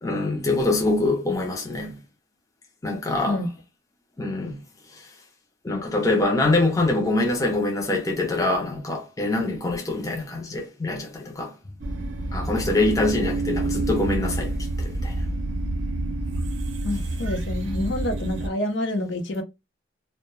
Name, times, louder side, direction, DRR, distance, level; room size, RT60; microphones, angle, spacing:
voice 1, 0.0-2.0 2.8-3.4 4.2-4.6 4.9-5.1 5.6-11.5 12.3-15.2, left 2 dB, 15° left, 0.4 m, -24 dB
sound 1, 11.8-18.5, right 2 dB, 80° right, 0.5 m, -28 dB
voice 2, 16.8-19.4, left 1 dB, 80° left, 0.6 m, -27 dB
2.2 x 2.1 x 2.9 m
head